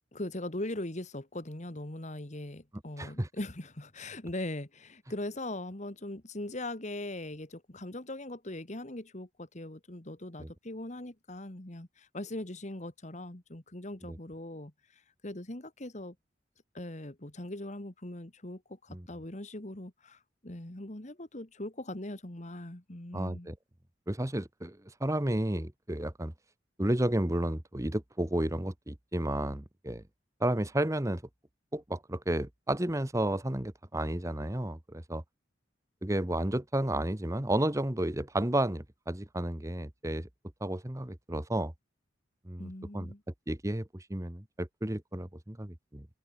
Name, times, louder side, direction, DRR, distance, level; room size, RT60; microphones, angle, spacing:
voice 1, 0.1-14.7 15.2-16.2 16.7-23.5 42.6-43.2, left 1 dB, 40° left, 1.9 m, -40 dB
voice 2, 3.0-3.3 10.4-10.5 14.0-14.2 18.9-19.0 23.1-23.5 24.1-26.3 26.8-30.0 30.4-31.2 31.7-35.2 36.0-40.3 40.6-41.7 42.5-43.1 43.5-46.1, right 1 dB, 15° right, 1.3 m, -32 dB
head